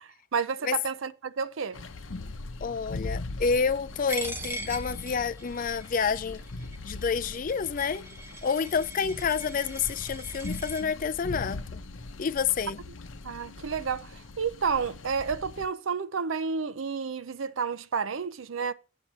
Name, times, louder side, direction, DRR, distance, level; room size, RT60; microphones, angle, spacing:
voice 1, 0.0-1.8 13.2-18.7, right 5 dB, 85° right, 0.6 m, -31 dB
sound 1, 1.7-15.7, left 2 dB, 75° left, 0.8 m, -40 dB
voice 2, 2.6-6.4 6.8-8.0 8.4-11.8 12.2-12.8, left 5 dB, 45° left, 0.4 m, -29 dB
Coin (dropping), 4.1-10.8, right 2 dB, 15° right, 1.0 m, -41 dB
8.5 x 4.7 x 7.2 m
head